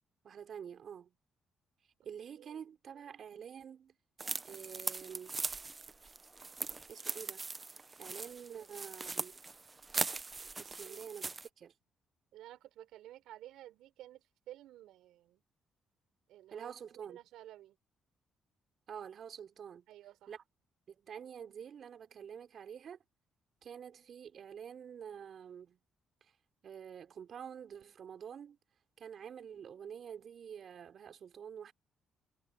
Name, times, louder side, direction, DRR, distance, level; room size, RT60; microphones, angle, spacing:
voice 1, 0.2-1.2 2.0-3.9 4.4-5.4 6.9-7.5 8.0-9.4 10.6-11.7 16.5-17.2 18.9-19.9 20.3-20.4 20.9-23.0 23.6-25.8 26.2-26.3 26.6-28.6 29.0-31.7, right 8 dB, 60° right, 5.2 m, -48 dB
sound 1, 4.2-11.5, right 3 dB, 25° right, 0.9 m, -40 dB
voice 2, 8.2-8.7 10.8-11.0 12.3-15.4 16.3-16.7 17.1-17.8 19.9-20.3, right 13 dB, 90° right, 5.3 m, -53 dB
cardioid pair, 90°, 0 cm